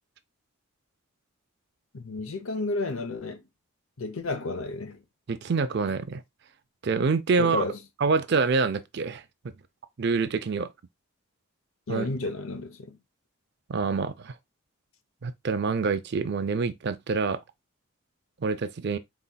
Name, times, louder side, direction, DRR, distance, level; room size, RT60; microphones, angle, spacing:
voice 1, 1.9-3.4 4.0-5.0 7.4-7.8 11.9-13.0, left 2 dB, 70° left, 0.7 m, -32 dB
voice 2, 5.3-6.2 6.8-7.7 8.0-9.2 10.0-10.7 11.9-12.1 13.7-14.3 15.2-17.4 18.4-19.0, right 4 dB, 50° right, 0.4 m, -26 dB
4.1 x 4.1 x 2.2 m
head